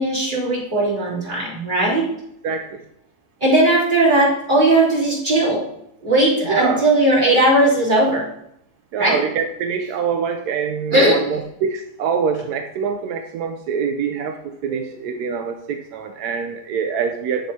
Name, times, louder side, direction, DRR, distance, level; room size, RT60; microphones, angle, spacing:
voice 1, 0.0-2.1 3.4-5.6 6.0-8.3 9.0-9.2 10.9-11.2 14.7-14.9, right 1 dB, 30° right, -7 dB, 3.3 m, -17 dB
voice 2, 2.4-2.8 6.4-6.8 8.9-17.5, right 6 dB, 85° right, 5 dB, 1.1 m, -25 dB
8.3 x 7.5 x 2.8 m, 0.76 s
omnidirectional pair, 1.6 m